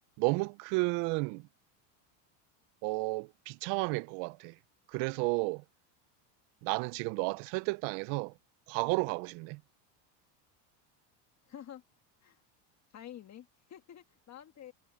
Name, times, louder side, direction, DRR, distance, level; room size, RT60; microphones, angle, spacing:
voice 1, 0.2-1.4 2.8-4.5 4.9-5.6 6.6-8.3 8.7-9.6, right 27 dB, 60° right, 0.6 m, -32 dB
voice 2, 11.5-11.8 12.2-12.4 12.9-14.7, left 10 dB, 35° left, 1.6 m, -49 dB
supercardioid pair, 125°, 49 cm